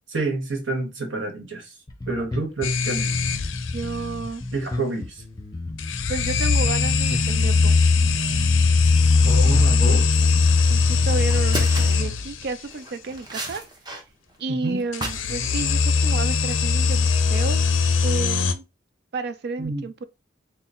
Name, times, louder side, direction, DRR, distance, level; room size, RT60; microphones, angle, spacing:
voice 1, 0.1-1.6 2.1-3.1 4.5-5.1 9.2-10.1 14.5-14.8 19.6-19.8, right 2 dB, 75° right, 1.3 m, -28 dB
Bass guitar, 1.9-11.5, left 2 dB, 20° left, 0.7 m, -34 dB
sound 1, 2.6-3.9 5.8-12.5 14.9-18.5, left 4 dB, 90° left, 0.5 m, -20 dB
voice 2, 3.7-4.4 6.1-7.7 10.7-13.6 14.4-17.6 18.0-18.7 19.1-20.0, right 4 dB, 60° right, 0.4 m, -31 dB
sound 2, 10.7-10.9 11.3-12.1 12.7-14.0 14.3-15.4 15.7-16.0, right 1 dB, 25° right, 0.8 m, -33 dB
3.9 x 2.1 x 4.1 m
head